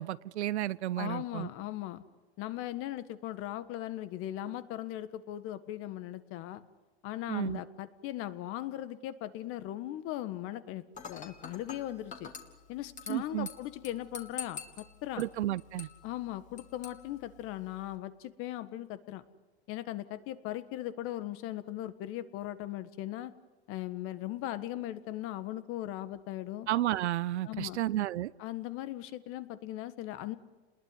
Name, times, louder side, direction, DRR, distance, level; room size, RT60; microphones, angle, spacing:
voice 1, 0.0-1.5 7.3-7.6 13.1-13.5 15.2-15.9 26.7-28.3, right 14 dB, 80° right, 19 dB, 0.8 m, -32 dB
voice 2, 1.0-2.0 2.4-6.6 7.0-12.3 12.7-15.2 16.0-19.2 19.7-23.3 23.7-26.7 27.4-27.8 28.4-30.4, left 14 dB, 40° left, 13 dB, 1.6 m, -38 dB
Dishes pots and pans / Glass, 10.9-17.9, left 6 dB, 20° left, 2.7 m, -47 dB
29.5 x 21.0 x 9.6 m, 1.2 s
supercardioid pair, 135°, 33 cm